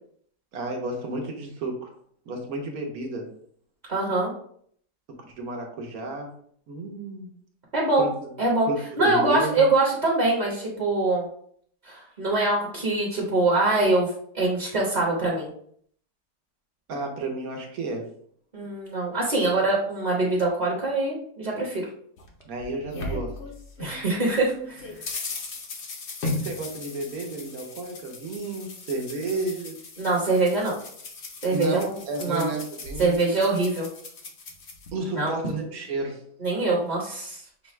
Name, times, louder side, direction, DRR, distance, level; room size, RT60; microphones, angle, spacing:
voice 1, 0.5-1.9 2.3-3.3 5.2-6.3 6.7-7.3 8.0-8.3 8.7-9.6 16.9-18.1 22.4-23.3 26.2-29.8 31.5-33.2 34.9-36.2, right 2 dB, 65° right, 2 dB, 1.3 m, -32 dB
voice 2, 3.9-4.3 7.7-8.1 8.4-8.7 9.0-11.3 11.8-15.5 18.5-21.9 23.8-24.8 30.0-30.7 31.4-32.5 33.0-33.9 35.2-35.3 36.4-37.4, right 2 dB, 30° right, -4 dB, 1.0 m, -24 dB
sound 1, 22.2-24.0 24.4-34.9, left 3 dB, 50° left, 0.9 m, -37 dB
6.0 x 2.3 x 3.1 m, 0.63 s
omnidirectional pair, 1.7 m